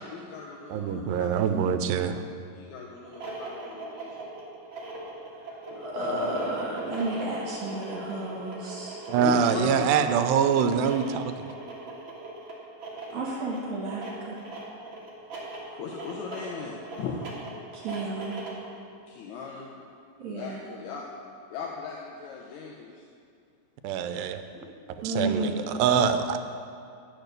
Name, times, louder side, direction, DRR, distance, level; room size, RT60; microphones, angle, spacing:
voice 1, 0.0-1.6 2.0-2.1 2.5-4.2 5.7-5.9 9.2-9.9 15.7-17.3 19.1-19.7 20.3-21.1 21.5-23.1, left 5 dB, 75° left, -2 dB, 1.9 m, -38 dB
voice 2, 0.7-2.2 9.1-11.2 23.8-24.4 25.0-26.4, right 7 dB, 90° right, 9 dB, 2.3 m, -24 dB
sound 1, 3.0-18.7, right 2 dB, 45° right, 2.1 m, -40 dB
voice 3, 5.8-9.0 13.1-14.4 17.7-18.4 20.2-20.6 24.5-24.6 25.0-25.8, right 1 dB, 60° right, -5 dB, 2.9 m, -32 dB
10.5 x 6.7 x 6.6 m, 2.4 s
omnidirectional pair, 3.9 m